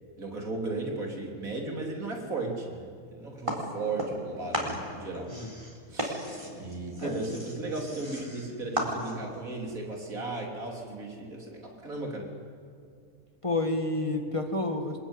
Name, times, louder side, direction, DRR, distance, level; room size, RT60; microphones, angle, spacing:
voice 1, 0.2-5.3 5.9-6.2 6.6-12.3, right 2 dB, 75° right, 1 dB, 3.8 m, -35 dB
sound 1, 3.5-4.3 4.5-9.4, equal, 20° right, 4.1 m, -35 dB
voice 2, 7.0-7.3 13.4-15.0, left 2 dB, 20° left, 5 dB, 1.8 m, -30 dB
25.0 x 21.0 x 9.8 m, 2.3 s
omnidirectional pair, 1.5 m